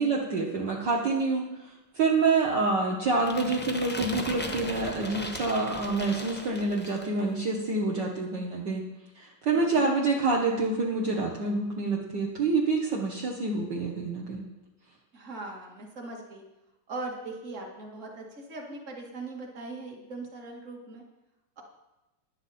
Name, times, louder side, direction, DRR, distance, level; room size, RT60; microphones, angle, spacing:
voice 1, 0.0-8.8 9.2-14.4, right 3 dB, 60° right, -2 dB, 1.9 m, -27 dB
sound 1, 3.2-7.2, left 1 dB, 15° left, 0.3 m, -37 dB
voice 2, 15.1-16.4 16.9-21.0, right 2 dB, 35° right, 1 dB, 2.2 m, -40 dB
13.0 x 11.0 x 4.2 m, 1.0 s
omnidirectional pair, 2.4 m